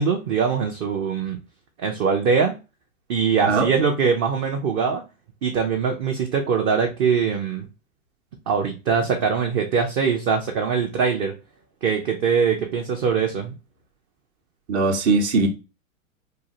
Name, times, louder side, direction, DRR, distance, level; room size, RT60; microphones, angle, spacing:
voice 1, 0.0-1.4 1.8-2.5 3.1-5.0 5.4-7.7 8.5-11.3 11.8-13.5, right 6 dB, 30° right, 0.5 m, -22 dB
voice 2, 14.7-15.5, right 3 dB, 55° right, 1.0 m, -20 dB
3.7 x 2.4 x 2.8 m
figure-of-eight pair, 90°, 41 cm